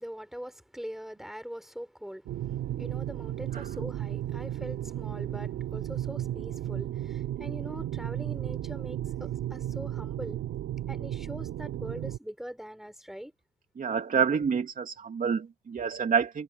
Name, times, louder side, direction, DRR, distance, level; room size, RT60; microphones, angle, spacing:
voice 1, 0.0-10.4 10.9-13.3, equal, ahead, 6.2 m, -42 dB
sound 1, 2.3-12.2, right 12 dB, 80° right, 3.4 m, -34 dB
voice 2, 13.8-16.4, right 6 dB, 45° right, 2.9 m, -28 dB
cardioid pair, 90°, 20 cm